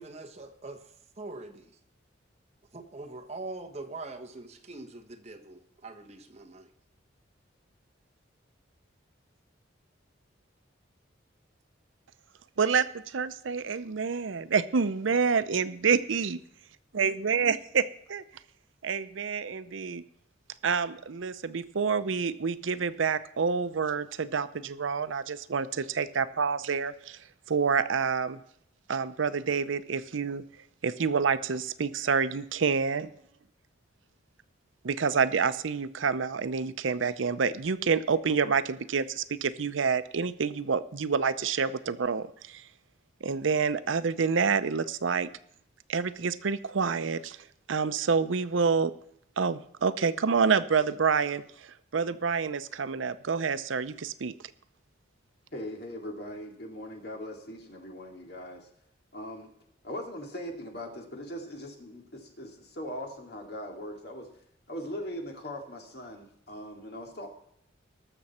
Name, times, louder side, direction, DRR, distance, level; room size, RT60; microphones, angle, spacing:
voice 1, 0.0-1.8 2.7-6.7, right 2 dB, 35° right, 5 dB, 1.2 m, -43 dB
voice 2, 12.6-16.4 16.9-18.2 18.8-20.0 20.6-27.2 27.5-28.4 28.9-30.4 30.8-33.1 34.8-42.6 43.2-45.3 45.9-47.4 47.7-48.9 49.4-54.3, right 5 dB, 80° right, 14 dB, 0.6 m, -28 dB
voice 3, 55.5-58.7 59.1-59.5 59.8-64.3 64.7-67.3, equal, 55° left, 2 dB, 2.3 m, -40 dB
19.5 x 7.1 x 4.3 m, 0.73 s
head